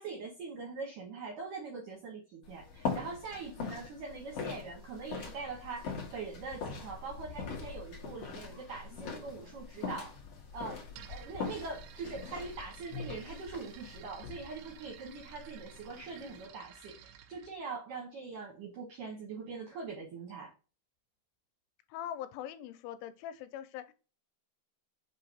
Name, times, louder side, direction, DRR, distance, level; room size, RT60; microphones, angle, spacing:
voice 1, 0.0-10.2 10.5-20.5, right 4 dB, 70° right, 0 dB, 1.9 m, -43 dB
sound 1, 2.4-16.5, left 5 dB, 70° left, 1.4 m, -42 dB
sound 2, 10.9-17.6, right 9 dB, 90° right, 3.3 m, -54 dB
voice 2, 21.9-23.9, left 10 dB, 90° left, 11 dB, 3.2 m, -42 dB
7.3 x 2.8 x 5.5 m, 0.33 s
omnidirectional pair, 5.6 m